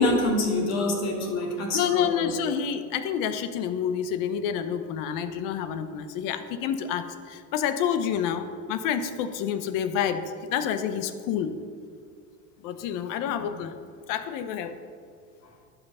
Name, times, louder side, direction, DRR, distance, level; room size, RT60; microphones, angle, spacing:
voice 1, 0.0-2.3, left 2 dB, 45° left, 1 dB, 2.2 m, -25 dB
voice 2, 1.7-10.2 10.5-11.5 12.6-13.7 14.1-14.7, left 8 dB, 65° left, 10 dB, 0.9 m, -28 dB
11.5 x 5.8 x 5.6 m, 2.2 s
supercardioid pair, 125°, 35 cm